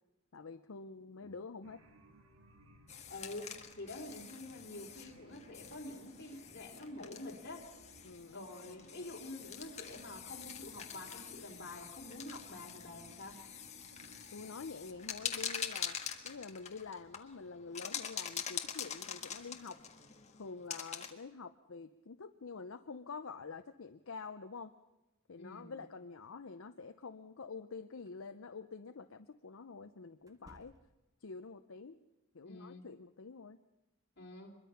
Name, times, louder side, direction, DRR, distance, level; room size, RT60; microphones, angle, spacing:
voice 1, 0.3-1.8 8.0-8.4 14.3-16.0 16.2-19.8 20.4-24.7 25.3-30.7 31.2-32.0 32.3-33.6, left 4 dB, 70° left, 8 dB, 0.7 m, -47 dB
sound 1, 1.6-15.6, right 1 dB, 65° right, 1.9 m, -62 dB
sound 2, 2.9-21.1, left 8 dB, 30° left, 1.5 m, -45 dB
voice 2, 3.1-7.7 8.3-13.4 25.4-25.8 32.4-32.8 34.2-34.6, left 2 dB, 50° left, 0 dB, 3.5 m, -47 dB
sound 3, 28.0-28.2 30.2-31.2, right 1 dB, 15° right, 1.3 m, -61 dB
24.5 x 22.0 x 5.8 m, 1.0 s
head